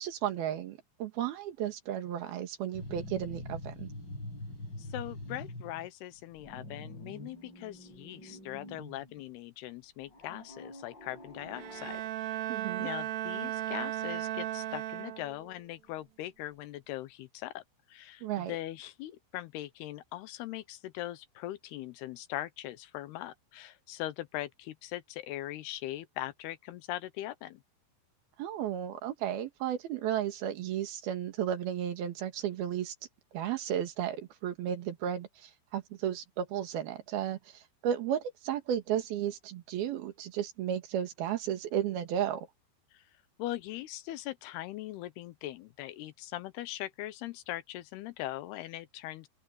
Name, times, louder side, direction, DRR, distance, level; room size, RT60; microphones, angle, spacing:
voice 1, 0.0-3.9 12.5-12.9 18.2-18.5 28.4-32.9 33.3-42.5, right 10 dB, 60° right, 3.4 m, -34 dB
sound 1, 2.7-5.9 6.2-9.3 10.1-12.1, left 1 dB, 20° left, 8.0 m, -45 dB
voice 2, 4.8-12.5 12.8-17.6 17.9-27.6 42.9-43.0 43.4-49.3, left 15 dB, 80° left, 2.4 m, -41 dB
Bowed string instrument, 11.5-15.5, right 12 dB, 80° right, 2.1 m, -36 dB
open air
omnidirectional pair, 5.5 m